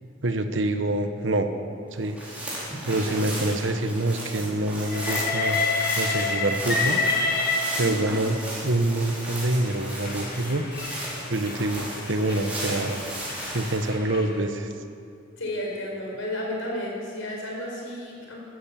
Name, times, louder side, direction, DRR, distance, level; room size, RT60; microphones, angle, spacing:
voice 1, 0.2-1.5 1.9-2.2 2.9-5.6 6.0-7.0 7.8-10.7 11.3-13.0 13.5-14.7, right 2 dB, 65° right, 7 dB, 1.2 m, -26 dB
sound 1, 2.0-13.9, right 1 dB, 5° right, 4.6 m, -35 dB
voice 2, 2.9-3.3 7.8-8.2 15.4-18.4, left 1 dB, 75° left, -2 dB, 4.8 m, -33 dB
Train, 4.9-8.3 9.1-14.4, left 3 dB, 45° left, 1.6 m, -29 dB
14.5 x 13.0 x 7.6 m, 2.4 s
head